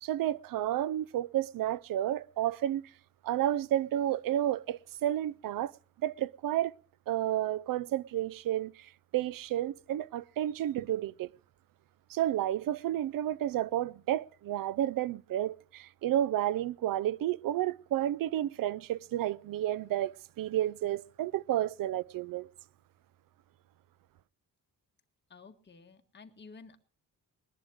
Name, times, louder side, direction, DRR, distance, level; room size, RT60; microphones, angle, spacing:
voice 1, 0.0-2.8 3.2-5.7 6.0-6.7 7.1-8.8 9.1-11.3 12.1-22.5, right 12 dB, 80° right, 0.6 m, -31 dB
voice 2, 25.3-26.8, left 4 dB, 30° left, 1.6 m, -52 dB
20.5 x 11.0 x 4.9 m
cardioid pair, 145°, 33 cm